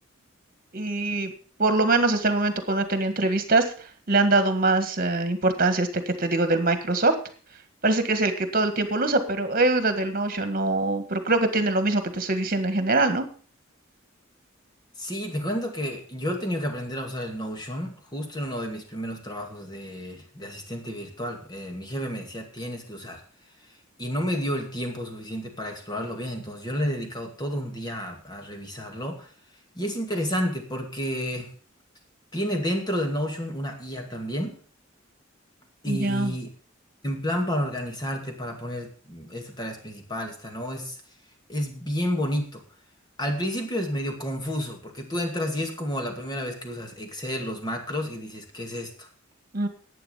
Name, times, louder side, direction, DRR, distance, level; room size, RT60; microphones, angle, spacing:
voice 1, 0.7-1.3 1.6-3.7 4.1-7.1 7.8-13.3 35.9-36.3 49.5-49.7, right 2 dB, 45° right, 9 dB, 1.7 m, -23 dB
voice 2, 15.0-23.2 24.0-29.3 29.7-31.5 32.3-34.5 35.8-36.5 37.0-41.0 41.5-42.6 43.2-49.1, equal, 20° left, 3 dB, 2.3 m, -31 dB
11.0 x 8.9 x 5.6 m, 0.42 s
head